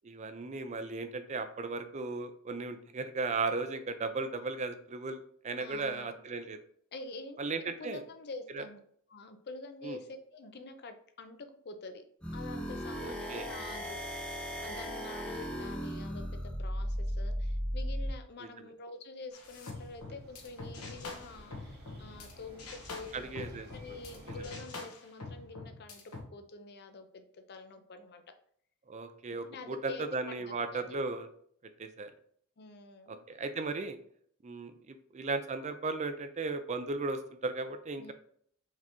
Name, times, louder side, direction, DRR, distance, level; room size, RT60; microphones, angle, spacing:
voice 1, 0.0-6.6 7.4-8.0 8.5-8.6 9.8-10.0 13.0-13.5 18.4-18.5 23.1-23.7 28.9-31.3 31.8-32.1 33.1-34.0 34.4-38.1, right 3 dB, 30° right, 9 dB, 0.4 m, -36 dB
voice 2, 5.6-6.2 6.9-8.8 9.1-11.4 11.6-12.0 12.3-14.0 14.3-23.5 23.7-26.0 26.3-28.2 29.4-31.0 32.6-33.2 38.0-38.1, left 3 dB, 50° left, 7 dB, 0.5 m, -47 dB
sound 1, 12.2-18.1, equal, 5° left, 0.9 m, -36 dB
sound 2, 19.3-22.3 22.6-26.2, left 3 dB, 80° left, 1.2 m, -45 dB
sound 3, 19.3-24.5, equal, 45° right, 1.0 m, -53 dB
4.7 x 3.4 x 3.0 m, 0.62 s
head